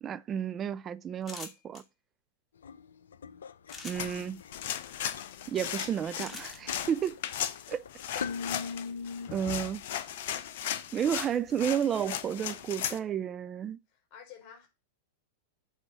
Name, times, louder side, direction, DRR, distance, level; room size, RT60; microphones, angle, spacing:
voice 1, 0.0-1.8 3.8-4.4 5.5-7.2 7.7-7.8 8.1-8.3 9.3-9.8 10.9-13.8, right 9 dB, 30° right, 0.6 m, -32 dB
sound 1, 1.2-1.8 3.7-4.2 6.2-6.6, left 4 dB, 20° left, 2.1 m, -43 dB
sound 2, 2.6-9.3, left 5 dB, 75° left, 0.7 m, -42 dB
sound 3, 3.7-13.0, left 10 dB, 60° left, 1.0 m, -37 dB
voice 2, 13.9-14.7, left 8 dB, 45° left, 4.5 m, -52 dB
8.0 x 4.4 x 5.7 m
hypercardioid pair, 100°, 0 cm